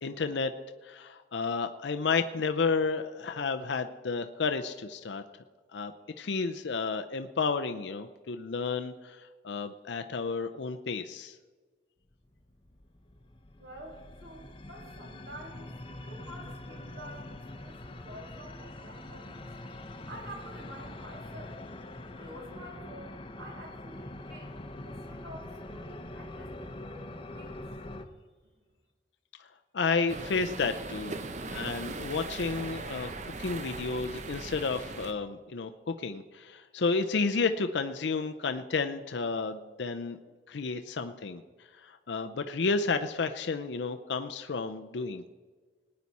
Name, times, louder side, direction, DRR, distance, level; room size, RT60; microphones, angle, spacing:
voice 1, 0.0-0.5 0.8-5.2 5.7-11.4 29.7-31.1 31.4-40.2 40.5-41.4 41.8-45.3, left 4 dB, 80° left, 7 dB, 0.6 m, -31 dB
sound 1, 12.1-28.0, left 1 dB, 30° left, 0.8 m, -44 dB
voice 2, 13.6-15.7 16.0-19.5 20.0-21.6 22.0-24.6 24.8-27.6, right 1 dB, 65° right, 0 dB, 3.1 m, -48 dB
sound 2, 30.1-35.1, right 3 dB, 40° right, 0.7 m, -39 dB
19.0 x 9.6 x 4.2 m, 1.4 s
head